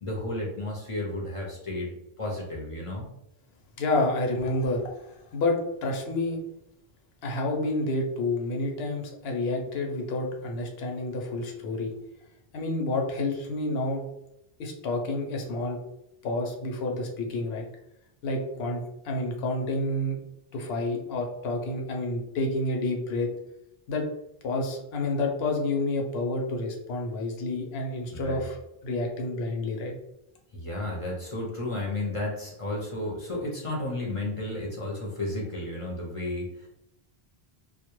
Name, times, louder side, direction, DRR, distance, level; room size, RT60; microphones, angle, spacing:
voice 1, 0.0-1.9 2.2-3.1 28.1-28.4 30.5-36.7, left 1 dB, 45° left, -2 dB, 0.5 m, -32 dB
voice 2, 3.8-6.4 7.2-11.9 12.5-14.0 14.6-15.8 16.2-17.7 18.2-20.2 20.5-23.3 23.9-24.1 24.4-28.6 28.8-29.9, left 2 dB, 80° left, 1 dB, 0.8 m, -29 dB
2.1 x 2.0 x 2.9 m, 0.83 s
omnidirectional pair, 1.0 m